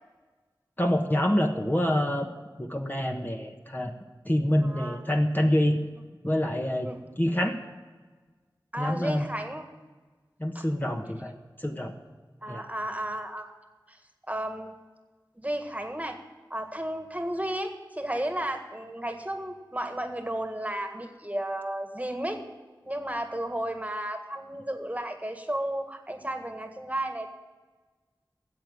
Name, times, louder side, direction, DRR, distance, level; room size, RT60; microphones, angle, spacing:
voice 1, 0.8-2.3 2.6-3.9 4.2-5.8 6.2-7.6 8.8-9.3 10.4-11.9 12.5-12.6, left 1 dB, 25° left, 3 dB, 1.2 m, -26 dB
voice 2, 4.6-5.0 6.8-6.9 8.7-9.6 10.5-10.6 12.4-13.5 13.9-14.0 14.3-14.7 15.3-16.2 16.5-22.4 22.8-27.3, right 1 dB, 20° right, 5 dB, 1.7 m, -33 dB
14.5 x 8.0 x 8.9 m, 1.3 s
wide cardioid pair, 40°, 8 cm